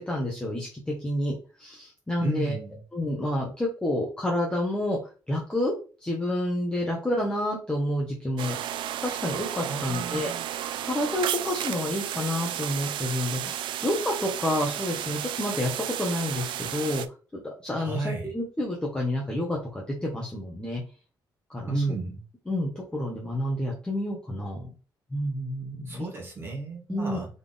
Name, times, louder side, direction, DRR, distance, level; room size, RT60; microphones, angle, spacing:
voice 1, 0.1-2.6 2.9-5.0 5.3-5.7 6.0-8.6 9.0-10.3 10.8-17.0 17.3-20.8 21.5-21.7 22.5-24.7 25.1-26.0 26.9-27.2, left 1 dB, 10° left, -3 dB, 1.2 m, -29 dB
voice 2, 2.2-2.8 9.7-10.5 17.8-18.3 21.7-22.2 25.9-27.3, right 3 dB, 30° right, -1 dB, 2.0 m, -32 dB
sound 1, 8.4-17.1, right 11 dB, 85° right, 0.4 m, -33 dB
4.1 x 3.5 x 3.6 m, 0.34 s
cardioid pair, 120°, 8 cm